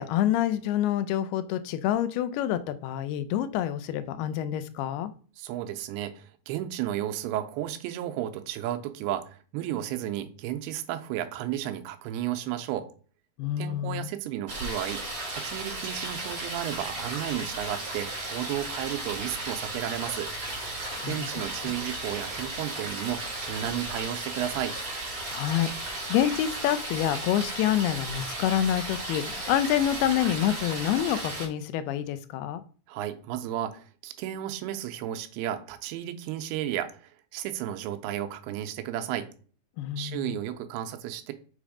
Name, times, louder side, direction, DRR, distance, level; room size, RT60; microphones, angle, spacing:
voice 1, 0.0-5.1 13.4-14.1 20.8-21.3 21.6-21.7 25.3-32.6 39.8-40.3, left 11 dB, 85° left, 13 dB, 2.5 m, -27 dB
voice 2, 5.4-12.9 13.6-15.0 15.3-20.3 21.0-24.8 32.9-39.3 40.0-41.3, right 12 dB, 85° right, 7 dB, 2.6 m, -33 dB
sound 1, 14.5-31.5, right 2 dB, 40° right, 2.1 m, -35 dB
6.4 x 3.5 x 4.8 m, 0.40 s
omnidirectional pair, 4.5 m